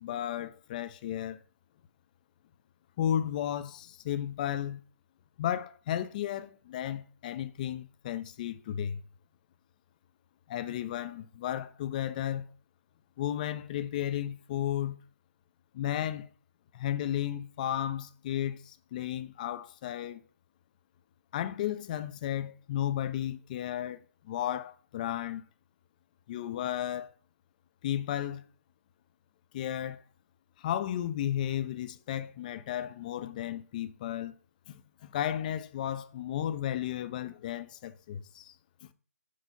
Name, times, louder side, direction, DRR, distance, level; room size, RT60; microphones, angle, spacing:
voice 1, 0.0-1.4 3.0-4.8 5.4-9.0 10.5-12.5 13.2-15.0 15.7-16.3 16.7-20.2 21.3-24.0 24.2-25.4 26.3-27.1 27.8-28.4 29.5-30.0 30.6-34.3 34.7-38.5, left 11 dB, 30° left, 0.5 m, -34 dB
6.5 x 4.0 x 5.4 m
figure-of-eight pair, 145°, 9 cm